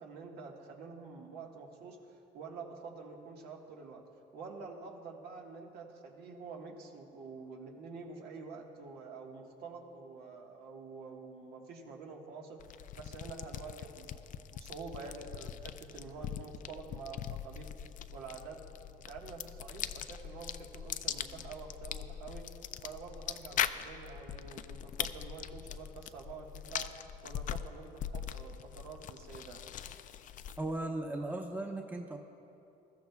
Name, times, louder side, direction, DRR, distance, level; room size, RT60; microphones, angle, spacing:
voice 1, 0.0-4.0 4.3-12.6 12.9-17.7 18.1-18.6 18.9-22.4 22.8-26.9 27.2-29.6, right 4 dB, 75° right, 0 dB, 1.6 m, -47 dB
sound 1, 12.6-30.8, left 9 dB, 50° left, 0.4 m, -41 dB
voice 2, 30.6-32.2, right 2 dB, 10° right, 1 dB, 1.0 m, -37 dB
21.0 x 13.5 x 2.4 m, 2.7 s
cardioid pair, 110°, 17 cm